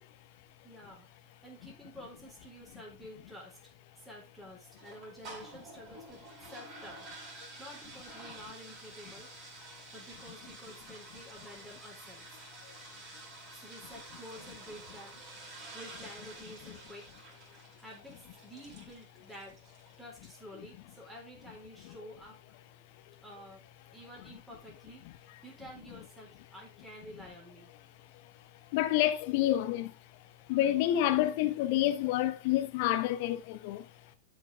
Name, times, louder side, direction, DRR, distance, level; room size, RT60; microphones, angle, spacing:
voice 1, 0.6-3.7 4.0-7.1 7.6-9.3 9.9-12.3 13.5-15.2 15.7-17.2 17.8-19.6 20.0-22.4 23.2-23.6 23.9-27.7, equal, 5° right, 4.1 m, -50 dB
sound 1, 4.8-20.0, right 3 dB, 30° right, 5.0 m, -50 dB
voice 2, 28.7-29.9 30.5-33.9, left 13 dB, 50° left, 1.1 m, -28 dB
12.5 x 5.8 x 3.5 m
figure-of-eight pair, 90°, 0 cm